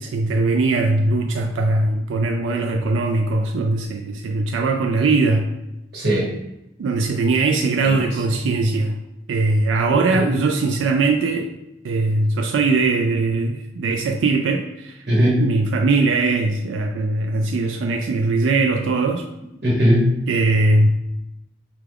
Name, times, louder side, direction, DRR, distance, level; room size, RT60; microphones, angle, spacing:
voice 1, 0.0-5.5 6.8-9.0 9.3-11.5 11.8-15.0 15.4-19.2 20.3-20.9, right 3 dB, 85° right, 3 dB, 0.3 m, -20 dB
voice 2, 5.9-6.3 7.8-7.9 9.9-10.4 15.1-15.5 19.6-20.1, equal, 60° right, -4 dB, 1.3 m, -19 dB
4.7 x 2.3 x 3.4 m, 0.93 s
head